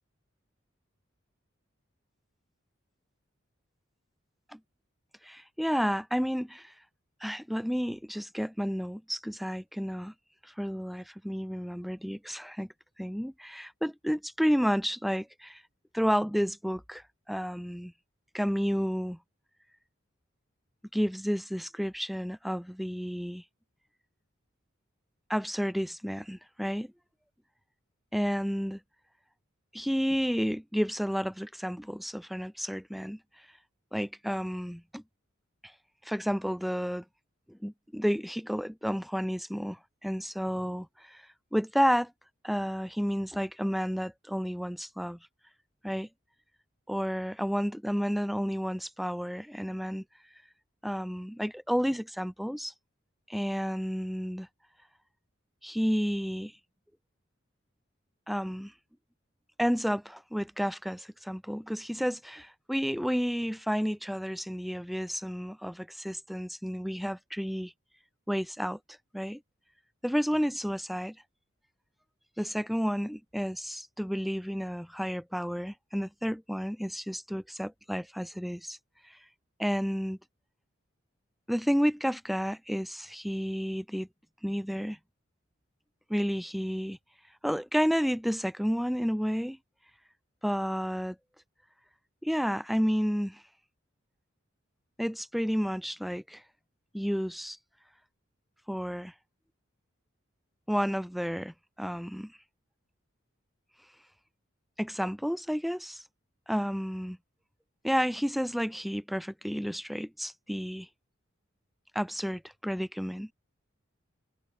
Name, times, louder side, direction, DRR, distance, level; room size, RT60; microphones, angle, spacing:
voice 1, 5.2-6.7 7.2-10.1 10.6-12.7 13.0-15.6 15.9-17.9 18.3-19.2 20.9-23.4 25.3-26.9 28.1-28.8 29.7-33.2 33.9-35.0 36.1-37.0 37.5-41.2 41.5-42.1 42.4-45.2 45.8-46.1 46.9-50.0 50.8-52.7 53.3-54.5 55.6-56.5 58.3-58.7 59.6-67.7 68.3-68.8 69.1-69.4 70.0-71.2 72.4-78.8 79.6-80.2 81.5-84.1 84.4-85.0 86.1-87.0 87.4-89.6 90.4-91.2 92.2-93.4 95.0-96.4 96.9-97.6 98.7-99.1 100.7-102.3 104.8-106.0 106.5-107.2 107.8-110.9 111.9-113.3, equal, ahead, 7.7 m, -31 dB
head